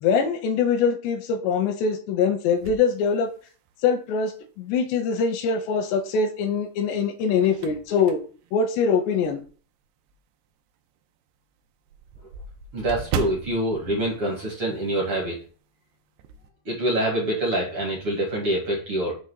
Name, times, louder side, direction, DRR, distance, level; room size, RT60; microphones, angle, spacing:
voice 1, 0.0-3.3 3.8-8.2 8.5-9.4, left 5 dB, 85° left, 8 dB, 2.5 m, -23 dB
sound 1, 2.6-3.9 4.4-4.5 6.0-6.5 7.0-9.6 10.1-10.2 10.6-10.7 11.0-11.1 11.3-15.1 15.3-15.6 15.9-16.5, right 6 dB, 85° right, 2.3 m, -37 dB
voice 2, 12.7-15.4 16.6-19.1, right 1 dB, 65° right, -2 dB, 1.3 m, -25 dB
7.7 x 3.2 x 6.1 m, 0.40 s
omnidirectional pair, 5.5 m